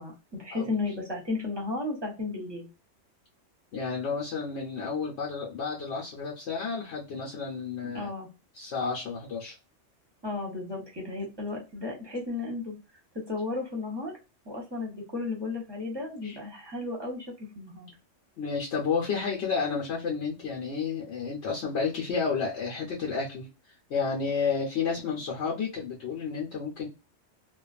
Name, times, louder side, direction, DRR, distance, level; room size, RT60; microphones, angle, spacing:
voice 1, 0.0-2.7 7.9-8.3 10.2-12.7 13.1-14.1 14.4-17.9, left 3 dB, 25° right, -2 dB, 0.9 m, -34 dB
voice 2, 3.7-8.1 8.5-9.6 16.2-16.4 18.4-23.5 23.9-26.9, left 5 dB, 65° left, -2 dB, 0.9 m, -31 dB
2.4 x 2.3 x 2.4 m, 0.28 s
omnidirectional pair, 1.3 m